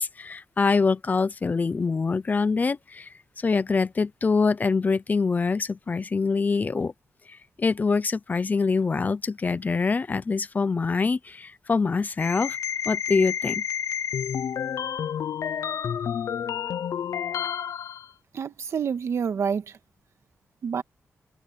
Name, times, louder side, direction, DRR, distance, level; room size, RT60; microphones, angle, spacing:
voice 1, 0.0-6.9 7.3-12.6 12.9-13.6, left 4 dB, 35° left, 0.7 m, -25 dB
sound 1, 12.2-18.1, left 8 dB, 80° left, 0.8 m, -30 dB
voice 2, 18.3-19.8 20.6-20.8, right 6 dB, 65° right, 2.1 m, -28 dB
wide cardioid pair, 125°, 5 cm